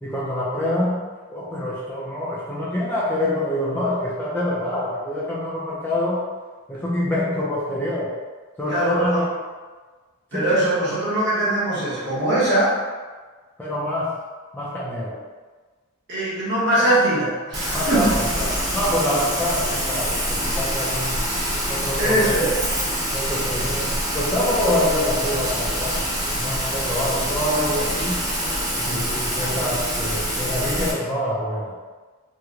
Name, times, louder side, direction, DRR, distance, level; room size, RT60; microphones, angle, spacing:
voice 1, 0.0-1.0 1.3-6.2 6.7-8.1 8.6-9.3 10.3-10.7 13.6-14.1 14.5-15.1 17.7-21.2 21.7-22.4 23.1-26.0 26.2-28.2 28.8-31.7, left 1 dB, 10° left, -8 dB, 0.4 m, -26 dB
voice 2, 8.7-9.2 10.3-12.8 16.1-18.1 22.0-22.6 28.8-29.1, right 1 dB, 50° right, -8 dB, 1.0 m, -21 dB
Rain, 17.5-30.9, equal, 15° right, 0.8 m, -25 dB
2.9 x 2.1 x 3.6 m, 1.4 s
head